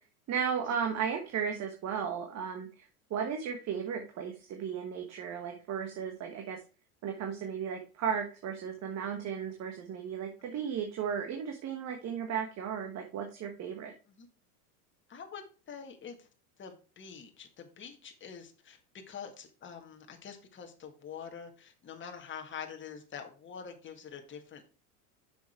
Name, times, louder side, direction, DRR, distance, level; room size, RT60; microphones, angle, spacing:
voice 1, 0.3-6.6 7.0-13.9, right 7 dB, 35° right, 4 dB, 1.3 m, -35 dB
voice 2, 15.1-16.3 16.6-18.8 19.1-24.6, left 7 dB, 25° left, 5 dB, 1.8 m, -46 dB
7.0 x 6.4 x 4.4 m, 0.36 s
supercardioid pair, 110°, 46 cm